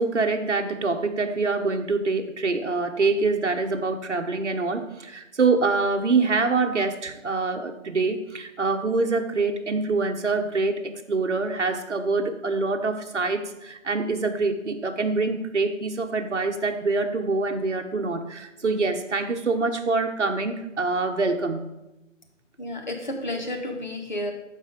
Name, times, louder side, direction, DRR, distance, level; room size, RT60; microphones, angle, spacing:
voice 1, 0.0-10.8 11.1-21.6, right 3 dB, 60° right, 5 dB, 1.2 m, -25 dB
voice 2, 22.6-24.3, left 1 dB, 35° left, 3 dB, 1.2 m, -31 dB
13.5 x 4.9 x 5.1 m, 0.98 s
figure-of-eight pair, 170°, 39 cm